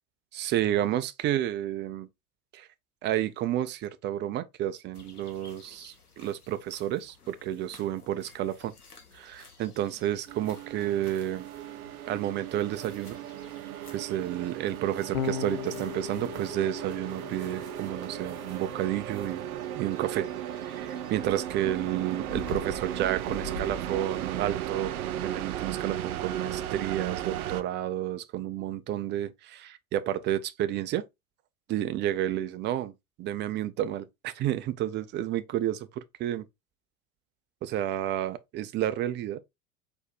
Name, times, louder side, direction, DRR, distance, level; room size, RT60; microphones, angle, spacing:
voice 1, 0.3-2.1 2.5-2.7 3.0-8.7 9.1-11.5 12.1-13.2 13.9-19.4 19.8-20.3 20.6-24.9 25.2-31.0 31.7-32.9 33.2-36.5 37.6-39.4, right 12 dB, 25° right, 0.4 m, -31 dB
sound 1, 4.9-24.6, left 4 dB, 90° left, 1.2 m, -50 dB
sound 2, 10.3-27.6, right 12 dB, 75° right, 0.6 m, -36 dB
Electric guitar / Bass guitar, 15.1-21.5, left 8 dB, 60° left, 0.8 m, -40 dB
4.5 x 4.4 x 2.2 m
figure-of-eight pair, 75°, 44 cm